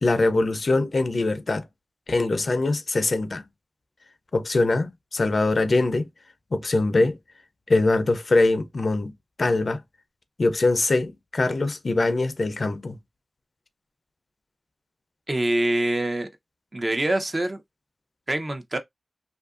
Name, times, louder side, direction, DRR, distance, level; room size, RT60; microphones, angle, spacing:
voice 1, 0.0-1.6 2.1-3.4 4.3-6.1 6.5-7.2 7.7-9.1 9.4-9.8 10.4-13.0, left 2 dB, 65° left, 0.4 m, -22 dB
voice 2, 15.3-16.3 16.7-17.6 18.3-18.8, right 1 dB, 40° right, 0.6 m, -25 dB
2.7 x 2.5 x 2.4 m
wide cardioid pair, 65°, 0 cm